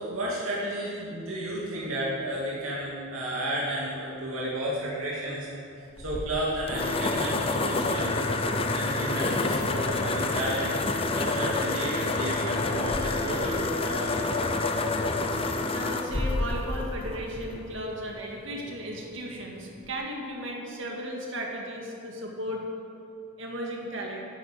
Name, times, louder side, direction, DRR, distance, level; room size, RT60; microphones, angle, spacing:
voice 1, 0.0-5.5 6.0-8.1 8.7-10.7 11.1-14.5, right 1 dB, 90° right, -6 dB, 2.6 m, -32 dB
sound 1, 6.0-17.8, left 2 dB, 25° left, 0.7 m, -28 dB
voice 2, 15.7-22.6 23.4-24.3, equal, 60° right, -1 dB, 2.1 m, -35 dB
11.5 x 8.6 x 7.5 m, 2.6 s
head